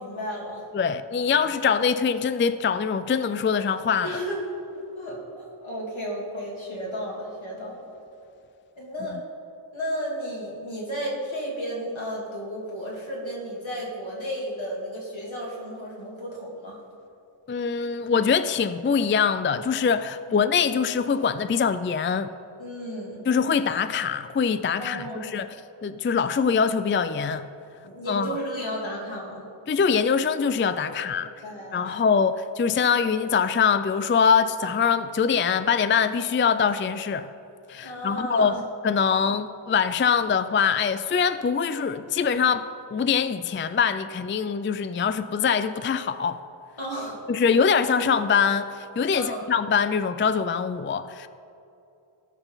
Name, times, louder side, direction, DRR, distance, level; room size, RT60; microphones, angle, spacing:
voice 1, 0.0-0.6 4.0-4.6 5.0-7.9 8.8-9.2 9.7-16.8 20.3-20.4 22.6-23.2 24.8-25.3 27.8-29.4 30.9-32.0 37.8-38.6 46.8-47.5 49.1-49.4, equal, 65° left, -4 dB, 2.8 m, -33 dB
voice 2, 0.7-4.1 17.5-22.3 23.3-25.5 25.8-27.5 28.1-28.3 29.7-31.3 31.7-37.3 37.7-42.7 42.9-46.4 47.3-51.3, left 6 dB, 25° left, 12 dB, 0.3 m, -23 dB
17.5 x 6.0 x 4.0 m, 2.7 s
wide cardioid pair, 55°, 50 cm